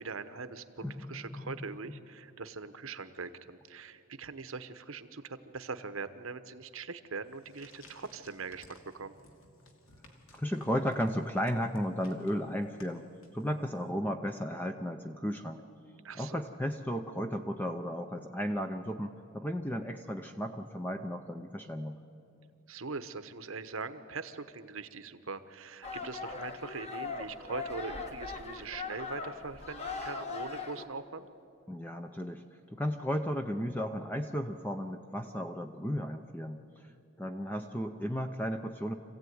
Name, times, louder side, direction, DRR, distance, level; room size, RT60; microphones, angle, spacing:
voice 1, 0.0-9.1 16.0-16.4 22.7-31.3, right 4 dB, 70° right, 11 dB, 1.1 m, -42 dB
voice 2, 0.8-1.5 10.3-13.1 13.3-15.6 16.2-22.0 31.7-36.9 37.2-38.9, equal, 10° left, 5 dB, 0.6 m, -34 dB
sound 1, 7.2-13.8, left 2 dB, 70° left, 2.6 m, -59 dB
sound 2, 25.8-30.9, left 4 dB, 30° left, 1.3 m, -40 dB
26.0 x 16.0 x 9.5 m, 2.7 s
head